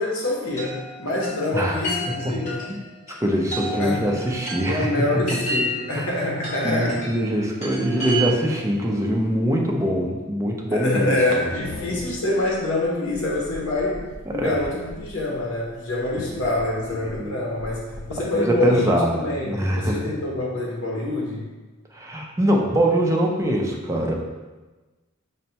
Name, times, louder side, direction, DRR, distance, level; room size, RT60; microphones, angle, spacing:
voice 1, 0.0-2.7 3.7-4.1 4.7-7.0 10.7-14.0 14.3-21.4, left 2 dB, 75° left, -3 dB, 0.8 m, -26 dB
Chime, 0.6-8.7, equal, 35° left, 1.3 m, -32 dB
voice 2, 1.5-1.8 2.2-2.4 3.2-4.9 5.1-5.4 6.0-6.1 6.6-11.2 14.3-14.5 17.2-17.3 18.3-20.0 21.9-24.1, equal, 15° right, 0 dB, 0.4 m, -23 dB
sound 1, 11.6-18.4, left 2 dB, 55° left, 0.3 m, -41 dB
5.2 x 2.1 x 2.8 m, 1.2 s
head